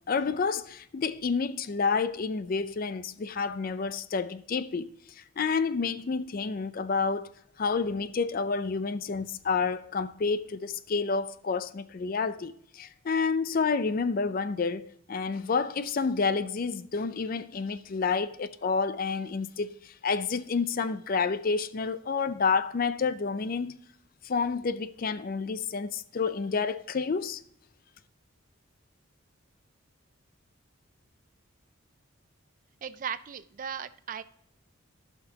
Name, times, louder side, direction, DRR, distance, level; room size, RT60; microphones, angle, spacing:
voice 1, 0.1-7.3 7.6-23.8 24.2-27.4, left 5 dB, 40° left, 0.4 m, -29 dB
voice 2, 32.8-34.2, right 7 dB, 40° right, 0.4 m, -37 dB
15.0 x 5.9 x 2.8 m
head